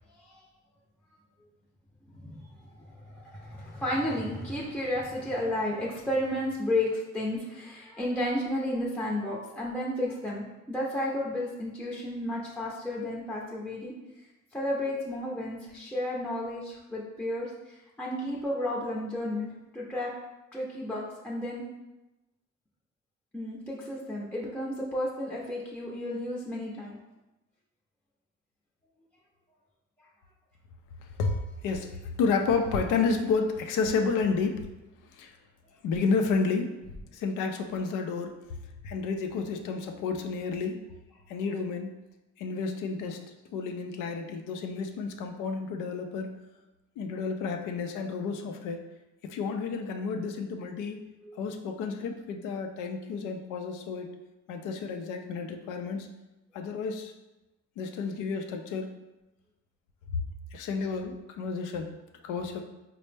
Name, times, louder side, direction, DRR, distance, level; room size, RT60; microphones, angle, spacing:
voice 1, 0.1-0.4 2.1-13.9 14.5-20.1 20.5-21.7 23.3-27.0 51.2-51.6, left 1 dB, 5° left, -5 dB, 0.5 m, -32 dB
voice 2, 31.2-34.6 35.1-35.4 35.8-36.7 37.1-38.4 38.8-40.8 41.3-42.0 42.4-43.2 43.5-46.3 47.0-48.8 49.2-51.0 51.4-54.1 54.5-56.1 56.5-57.1 57.8-58.9 60.5-61.9 62.2-62.6, left 4 dB, 90° left, 5 dB, 0.5 m, -31 dB
4.2 x 2.0 x 3.2 m, 1.0 s
cardioid pair, 90°, 30 cm